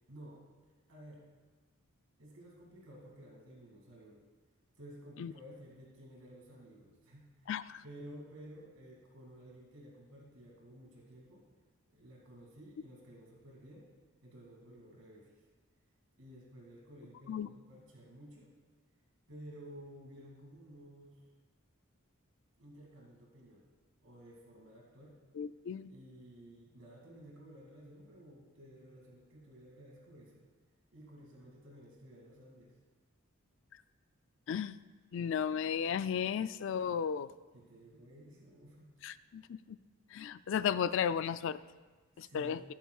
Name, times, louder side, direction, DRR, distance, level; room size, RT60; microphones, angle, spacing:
voice 1, 0.1-0.4 0.9-1.2 2.2-4.2 4.8-7.5 7.8-11.4 11.9-13.9 14.2-15.3 16.2-18.5 19.3-21.2 22.6-23.7 24.0-25.2 25.9-30.4 30.9-32.7 37.5-38.9 42.2-42.6, equal, 90° right, -3 dB, 2.4 m, -54 dB
voice 2, 7.5-7.8 17.3-17.5 25.4-25.9 34.5-34.8 35.1-37.3 39.0-39.8 40.1-41.6 42.2-42.6, left 8 dB, 65° left, 15 dB, 0.3 m, -34 dB
20.5 x 7.2 x 2.4 m, 1.3 s
head